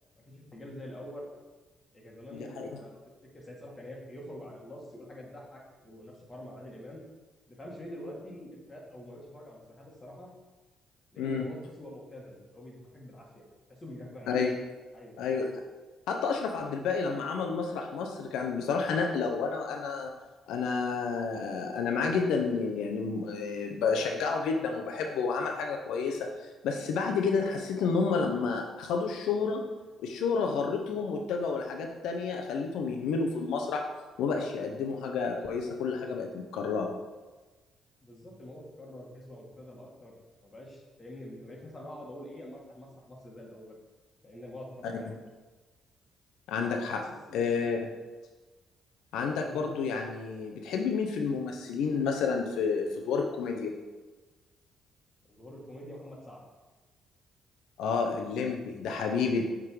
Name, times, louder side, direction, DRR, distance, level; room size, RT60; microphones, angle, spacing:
voice 1, 0.2-1.3 1.9-3.0 3.3-7.0 7.5-10.3 11.1-13.4 13.7-14.5 14.9-15.3 38.0-40.1 40.4-43.7 44.2-45.1 47.0-47.4 49.4-49.6 55.3-56.4, left 1 dB, 25° left, -3 dB, 2.0 m, -45 dB
voice 2, 2.3-2.7 11.2-11.4 14.3-14.5 15.2-15.5 16.1-20.1 20.5-29.6 30.0-33.8 34.2-37.0 45.1-45.2 46.5-47.1 47.3-47.9 49.1-53.8 57.8-59.4, left 5 dB, 85° left, 3 dB, 0.7 m, -30 dB
7.6 x 3.7 x 4.8 m, 1.2 s
cardioid pair, 90°, 0 cm